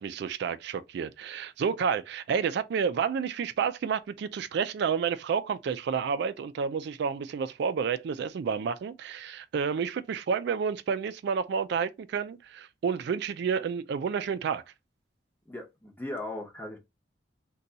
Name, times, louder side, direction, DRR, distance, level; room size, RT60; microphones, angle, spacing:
voice 1, 0.0-14.6, right 6 dB, 65° right, 0.3 m, -30 dB
voice 2, 15.5-16.8, left 1 dB, 10° left, 0.8 m, -38 dB
2.7 x 2.3 x 3.9 m
head